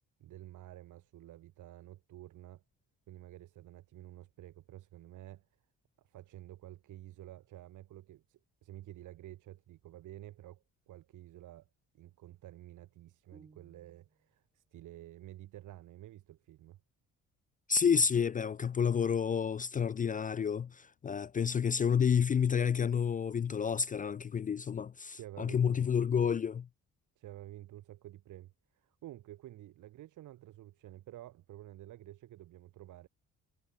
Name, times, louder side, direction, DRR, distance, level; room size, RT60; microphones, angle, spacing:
voice 1, 0.2-2.6 3.1-5.4 6.0-11.7 11.9-16.8 25.1-25.9 26.2-26.3 27.2-33.1, right 14 dB, 80° right, 3.2 m, -51 dB
sound 1, 13.3-14.4, right 4 dB, 25° right, 2.1 m, -61 dB
voice 2, 17.7-26.7, left 7 dB, 30° left, 0.4 m, -30 dB
cardioid pair, 90°, 30 cm